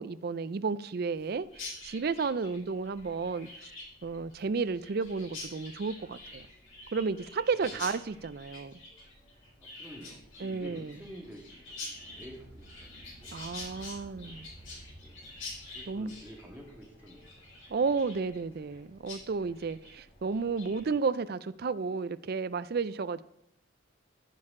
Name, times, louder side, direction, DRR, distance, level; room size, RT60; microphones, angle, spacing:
voice 1, 0.0-3.5 4.0-6.5 6.9-8.7 10.4-10.9 13.3-14.5 15.9-16.1 17.7-23.2, right 4 dB, 50° right, 0.4 m, -32 dB
sound 1, 1.1-20.9, equal, 35° left, 3.7 m, -60 dB
Chirp tweet, 1.5-18.8 19.1-19.2 19.5-19.9 20.3-20.8, left 2 dB, 80° left, 4.4 m, -46 dB
voice 2, 7.6-7.9 8.1-8.2 9.6-13.3 14.1-15.1 15.7-17.2, equal, 10° right, 1.6 m, -50 dB
sound 2, 11.6-16.4, right 1 dB, 80° right, 2.9 m, -54 dB
14.0 x 6.5 x 3.7 m
head